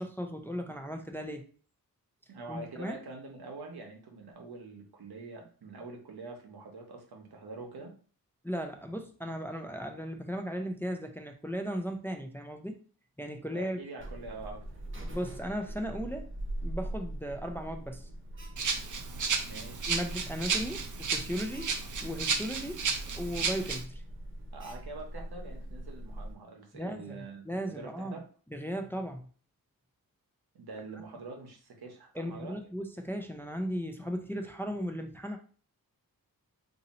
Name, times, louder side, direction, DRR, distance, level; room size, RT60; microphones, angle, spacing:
voice 1, 0.0-1.4 2.5-3.0 8.4-12.8 13.2-13.8 15.1-16.3 16.6-18.1 19.9-21.7 22.0-22.8 23.1-24.0 26.7-28.2 28.5-29.3 32.1-35.4, equal, 5° left, 4 dB, 0.4 m, -36 dB
voice 2, 2.3-7.9 13.5-14.6 19.4-19.9 24.5-28.2 30.5-32.5, right 3 dB, 90° right, 1 dB, 0.9 m, -45 dB
Alarm, 14.0-26.4, right 1 dB, 35° right, 0.9 m, -42 dB
Rattle (instrument), 18.6-23.8, right 5 dB, 55° right, 0.5 m, -33 dB
2.7 x 2.7 x 4.0 m, 0.41 s
wide cardioid pair, 100°, 37 cm